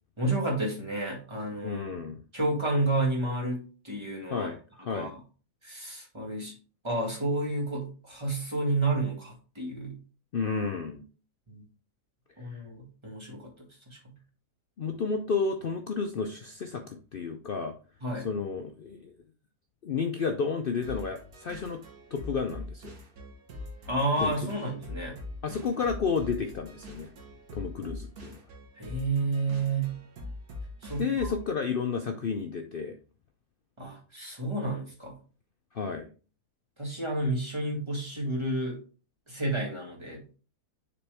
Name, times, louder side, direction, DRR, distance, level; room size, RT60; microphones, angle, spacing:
voice 1, 0.2-2.0 2.3-4.5 4.9-5.2 5.6-6.5 6.8-10.0 11.5-11.6 12.4-14.1 18.0-18.3 23.9-25.2 28.8-30.0 30.8-31.1 33.8-35.1 36.8-38.8 39.3-40.4, right 2 dB, 15° right, -1 dB, 1.8 m, -31 dB
voice 2, 1.6-2.2 4.3-5.1 10.3-11.0 12.5-12.6 14.8-17.7 18.2-19.1 19.8-21.8 22.1-22.9 24.2-24.3 25.4-27.1 27.5-28.4 31.0-32.9 35.7-36.1, left 5 dB, 80° left, 4 dB, 0.5 m, -31 dB
sound 1, 20.8-31.5, left 2 dB, 70° right, 1.7 m, -43 dB
6.9 x 4.2 x 3.4 m, 0.37 s
omnidirectional pair, 1.7 m